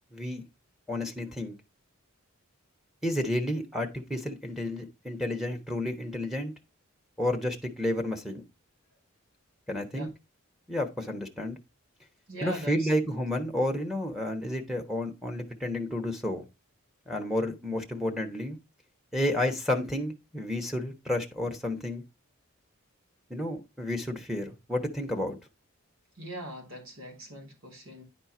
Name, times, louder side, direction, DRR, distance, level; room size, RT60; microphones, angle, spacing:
voice 1, 0.1-0.4 0.9-1.5 3.0-6.5 7.2-8.4 9.7-10.1 10.7-11.6 12.4-16.4 17.1-18.6 19.1-22.0 23.3-25.4, left 1 dB, ahead, 1.2 m, -31 dB
voice 2, 12.3-12.9 26.1-28.0, right 1 dB, 65° right, 3.1 m, -41 dB
10.5 x 4.5 x 4.4 m
head